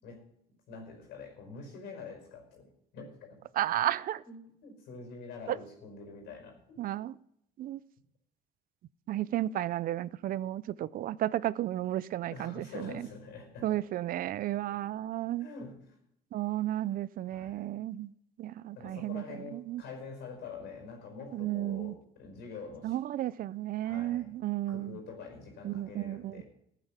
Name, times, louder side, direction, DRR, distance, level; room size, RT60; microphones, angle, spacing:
voice 1, 0.7-3.4 4.2-6.8 12.3-13.8 14.5-14.8 15.4-15.8 17.3-17.7 18.8-23.0 23.8-24.3 24.7-26.4, left 4 dB, 80° left, 5.3 m, -46 dB
voice 2, 3.5-4.2 5.5-5.6 6.8-7.2 7.6-7.8 9.1-13.1 13.6-15.5 16.3-18.1 18.4-19.8 21.3-21.9 22.8-25.0 25.6-26.4, right 13 dB, 55° right, 0.5 m, -33 dB
15.5 x 9.0 x 5.8 m
cardioid pair, 110°, 17 cm